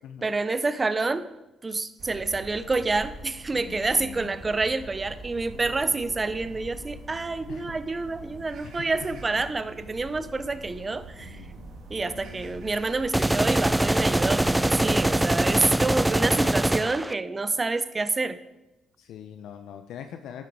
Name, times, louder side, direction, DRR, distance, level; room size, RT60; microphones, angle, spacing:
voice 1, 0.2-1.3 1.6-11.4 11.9-18.4, right 3 dB, 25° right, 13 dB, 0.8 m, -28 dB
sound 1, 2.0-15.8, right 2 dB, 65° right, 2.3 m, -44 dB
voice 2, 3.5-4.5 5.5-6.6 7.5-7.7 8.6-9.2 11.2-11.8 12.1-12.7 19.0-20.4, left 9 dB, 80° left, 7 dB, 0.7 m, -44 dB
sound 2, 13.1-17.1, right 1 dB, 10° right, 0.3 m, -23 dB
11.0 x 9.1 x 4.8 m, 0.96 s
cardioid pair, 90°, 0 cm